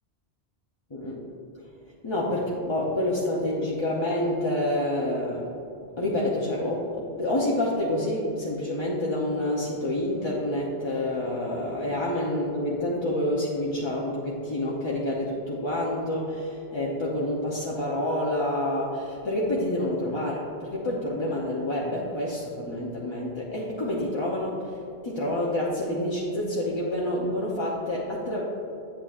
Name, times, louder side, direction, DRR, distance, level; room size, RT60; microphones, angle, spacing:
voice 1, 2.0-5.5 6.0-24.8 25.0-28.4, left 1 dB, 30° left, -5 dB, 0.8 m, -28 dB
8.7 x 8.6 x 2.5 m, 2.9 s
omnidirectional pair, 1.1 m